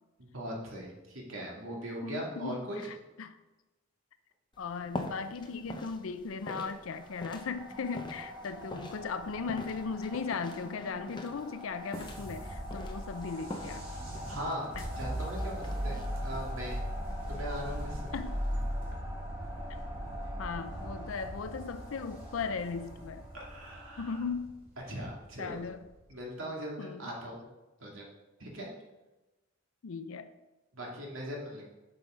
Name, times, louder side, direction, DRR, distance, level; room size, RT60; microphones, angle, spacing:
voice 1, 0.2-2.8 14.3-16.8 17.3-18.1 23.3-24.2 24.9-25.6 26.1-27.5 27.8-28.1 28.4-28.7 30.7-31.6, equal, 85° right, -2 dB, 2.2 m, -40 dB
voice 2, 2.0-3.4 4.6-13.9 14.8-14.9 18.1-18.4 20.4-23.3 24.0-24.6 25.4-25.8 26.8-27.0 29.8-30.3, left 5 dB, 85° left, 11 dB, 0.5 m, -37 dB
sound 1, 4.5-18.6, left 1 dB, 25° left, 0.7 m, -46 dB
sound 2, 6.6-24.3, equal, 20° right, 1.8 m, -46 dB
sound 3, 11.9-26.1, equal, 45° right, 2.3 m, -39 dB
8.0 x 5.7 x 5.1 m, 1.1 s
head